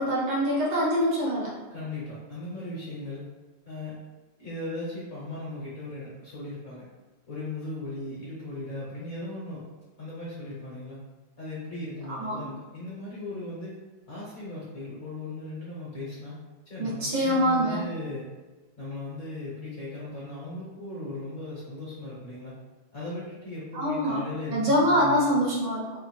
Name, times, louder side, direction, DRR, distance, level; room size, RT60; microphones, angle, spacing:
voice 1, 0.0-1.6 12.2-12.5 16.8-17.8 23.7-24.2 24.5-25.9, equal, 60° right, -5 dB, 1.5 m, -24 dB
voice 2, 1.7-3.2 3.6-4.0 4.4-6.8 7.3-9.6 10.0-11.0 11.4-13.7 14.1-16.4 16.7-18.3 18.8-22.5 22.9-25.4, left 2 dB, 50° left, -7 dB, 1.3 m, -37 dB
3.5 x 2.7 x 4.2 m, 1.2 s
omnidirectional pair, 2.2 m